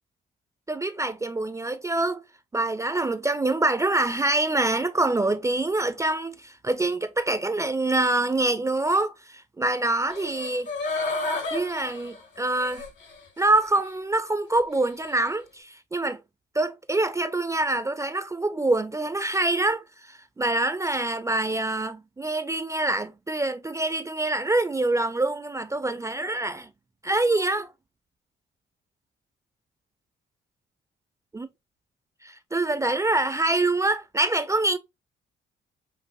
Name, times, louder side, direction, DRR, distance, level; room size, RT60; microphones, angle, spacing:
voice 1, 0.7-2.2 2.5-10.7 11.5-12.8 13.4-16.2 16.5-26.7 27.0-27.7 31.3-31.5 32.2-34.8, right 2 dB, 15° right, 0.3 m, -25 dB
sound 1, 10.1-13.2 13.6-13.7, left 3 dB, 65° left, 1.5 m, -31 dB
5.1 x 2.0 x 2.6 m
cardioid pair, 90°, 20 cm